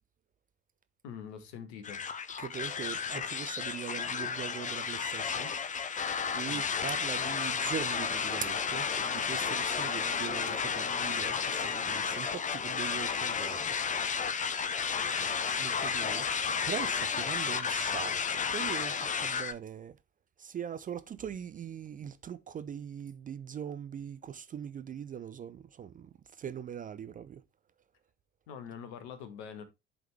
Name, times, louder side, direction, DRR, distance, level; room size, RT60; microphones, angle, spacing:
voice 1, 1.0-2.1 3.1-3.2 6.4-6.6 15.1-15.4 28.5-29.6, left 7 dB, 65° left, 1.2 m, -45 dB
sound 1, 1.8-19.5, left 6 dB, 20° left, 0.6 m, -32 dB
voice 2, 2.4-5.5 5.9-6.0 6.3-13.7 15.6-20.0 20.4-27.4, right 8 dB, 25° right, 0.4 m, -41 dB
10.5 x 3.6 x 3.2 m
figure-of-eight pair, 50°, 34 cm